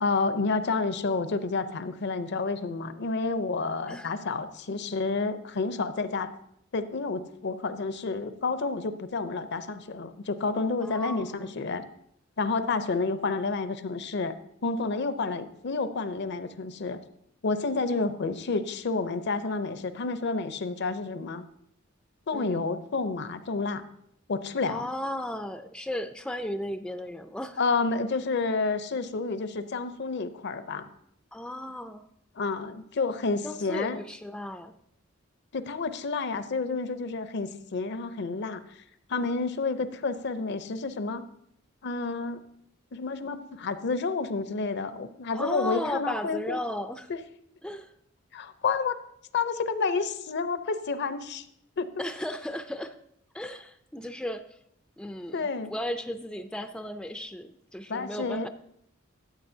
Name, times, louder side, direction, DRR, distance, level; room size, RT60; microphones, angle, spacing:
voice 1, 0.0-6.3 6.7-11.8 12.4-14.3 14.6-17.0 17.4-21.5 22.3-23.8 24.3-24.9 27.6-30.9 32.4-34.0 35.5-38.6 39.1-41.2 41.8-42.4 42.9-46.6 47.1-47.2 48.3-49.0 49.3-51.5 51.8-51.9 55.3-55.7 57.9-58.5, left 4 dB, 60° left, 11 dB, 0.6 m, -30 dB
voice 2, 10.8-11.5 22.3-22.6 24.7-27.6 31.3-32.0 33.4-34.7 45.3-47.1 47.6-47.9 52.0-53.0 53.3-54.4 55.0-58.5, left 1 dB, 5° left, 8 dB, 0.3 m, -35 dB
13.0 x 8.2 x 2.7 m, 0.72 s
head